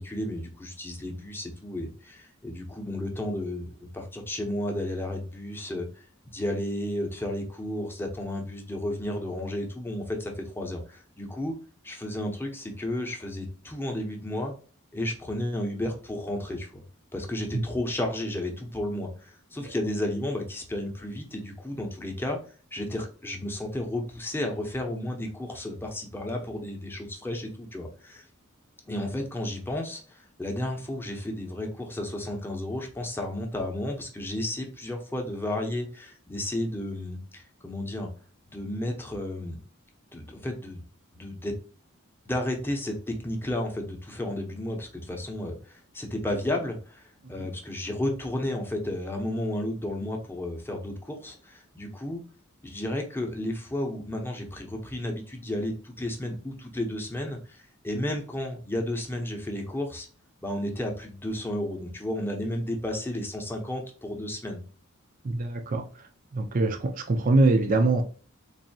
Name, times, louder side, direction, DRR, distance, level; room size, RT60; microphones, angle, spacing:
voice 1, 0.0-11.5 11.8-14.5 14.9-16.8 17.1-22.4 22.7-28.3 28.9-38.1 38.5-39.6 40.1-40.8 41.1-41.5 42.2-52.2 52.6-60.1 60.4-64.6, left 1 dB, 10° left, 1 dB, 0.8 m, -32 dB
voice 2, 65.2-65.8 66.3-68.0, right 2 dB, 40° right, 4 dB, 0.5 m, -23 dB
4.0 x 2.7 x 2.7 m, 0.40 s
head